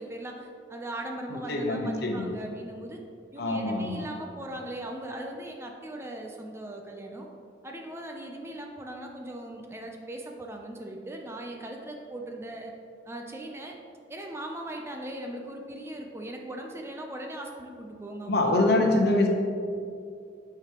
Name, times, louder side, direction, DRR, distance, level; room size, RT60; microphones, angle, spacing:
voice 1, 0.0-3.0 3.3-7.3 7.6-12.7 13.1-13.8 14.1-18.5, right 1 dB, 15° right, 1 dB, 0.5 m, -39 dB
voice 2, 1.5-2.2 3.4-4.0 18.3-19.3, left 2 dB, 60° left, 2 dB, 0.9 m, -24 dB
9.0 x 5.0 x 2.9 m, 2.4 s
head